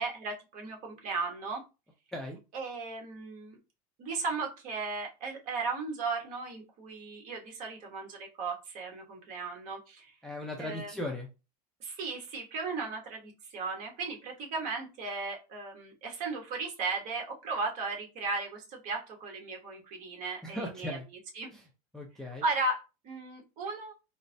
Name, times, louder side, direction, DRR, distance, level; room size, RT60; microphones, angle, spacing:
voice 1, 0.0-1.6 2.5-3.6 4.0-10.1 10.6-10.9 11.8-21.0 21.3-21.5 22.4-23.9, right 3 dB, 40° right, 2 dB, 1.0 m, -36 dB
voice 2, 10.2-11.3 20.4-21.1 21.5-21.6 21.9-22.4, left 1 dB, 5° left, -1 dB, 0.4 m, -37 dB
3.9 x 2.1 x 2.6 m, 0.29 s
supercardioid pair, 145°, 19 cm